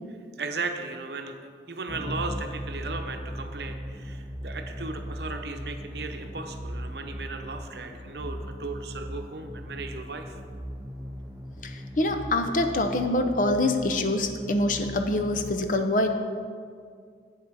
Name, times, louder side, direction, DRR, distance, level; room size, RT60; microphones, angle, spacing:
voice 1, 0.4-1.4 1.7-10.4, right 3 dB, 65° right, 5 dB, 0.8 m, -36 dB
sound 1, 1.9-15.5, equal, 15° right, 0.5 m, -38 dB
voice 2, 11.6-16.1, left 1 dB, 45° left, 5 dB, 0.7 m, -25 dB
8.2 x 7.7 x 4.7 m, 2.1 s
head